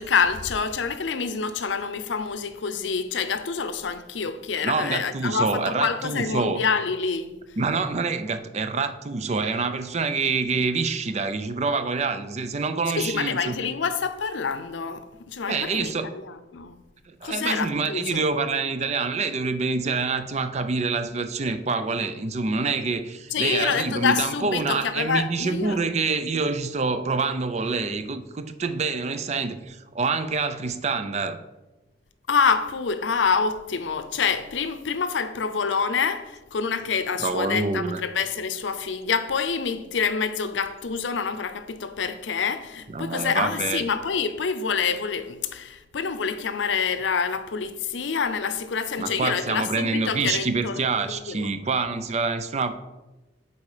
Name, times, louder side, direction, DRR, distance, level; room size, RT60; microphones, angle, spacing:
voice 1, 0.0-7.4 12.9-16.8 17.2-18.3 23.3-25.9 32.3-51.5, left 5 dB, 85° left, 0.6 m, -27 dB
voice 2, 4.6-6.6 7.6-13.6 15.5-16.1 17.1-31.4 37.2-38.0 42.9-43.8 49.0-52.7, right 4 dB, 35° right, 0.5 m, -26 dB
8.3 x 4.3 x 4.9 m
head